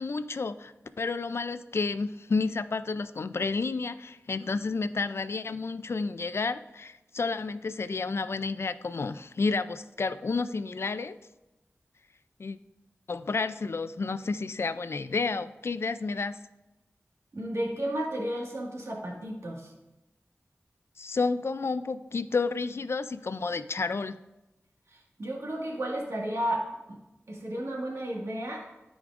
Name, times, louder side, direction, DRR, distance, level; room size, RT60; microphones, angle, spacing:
voice 1, 0.0-11.2 12.4-12.6 13.1-16.4 21.0-24.2, left 4 dB, 65° left, 13 dB, 0.4 m, -31 dB
voice 2, 17.3-19.7 24.9-26.6 27.3-28.7, right 1 dB, 80° right, -2 dB, 1.8 m, -33 dB
13.0 x 5.0 x 2.5 m, 1.0 s
wide cardioid pair, 50°, 5 cm